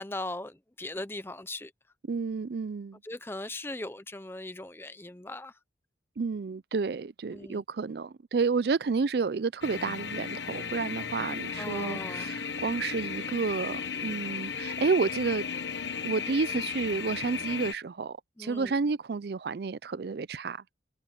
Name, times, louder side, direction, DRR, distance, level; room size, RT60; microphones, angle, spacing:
voice 1, 0.0-1.7 3.0-5.5 7.3-7.6 11.6-12.3 18.4-18.8, left 2 dB, 15° left, 0.7 m, -39 dB
voice 2, 2.1-3.0 6.2-15.5 16.0-20.6, right 4 dB, 60° right, 0.4 m, -30 dB
sound 1, 9.6-17.7, left 6 dB, 80° left, 1.2 m, -35 dB
head